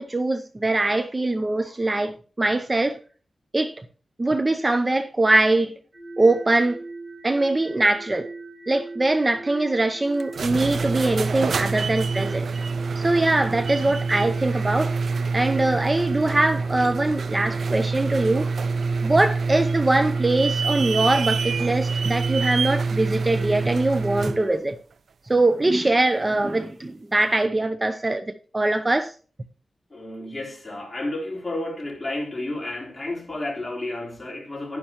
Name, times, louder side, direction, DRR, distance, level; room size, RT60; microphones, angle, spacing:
voice 1, 0.0-3.0 3.5-3.8 4.2-5.7 6.2-6.8 7.2-8.3 8.7-12.5 13.0-15.0 15.3-18.5 19.0-24.7 25.3-29.1, right 2 dB, 25° right, 0.6 m, -22 dB
sound 1, 5.9-24.5, right 2 dB, 50° right, 2.2 m, -39 dB
sound 2, 10.2-24.4, right 4 dB, 70° right, 0.4 m, -26 dB
voice 2, 29.9-34.8, left 2 dB, 20° left, 3.8 m, -31 dB
11.0 x 10.5 x 2.9 m
wide cardioid pair, 105°, 0 cm